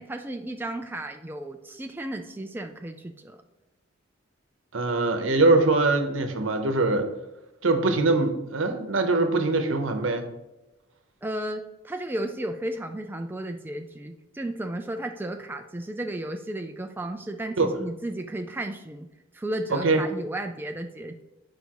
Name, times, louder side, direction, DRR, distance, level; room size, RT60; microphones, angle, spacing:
voice 1, 0.0-3.4 11.2-19.1 19.3-21.2, right 1 dB, 10° right, 4 dB, 0.4 m, -34 dB
voice 2, 4.7-7.1 7.6-10.2 17.6-17.7 19.7-20.0, right 3 dB, 75° right, 6 dB, 0.9 m, -22 dB
9.4 x 5.2 x 3.0 m, 1.0 s
head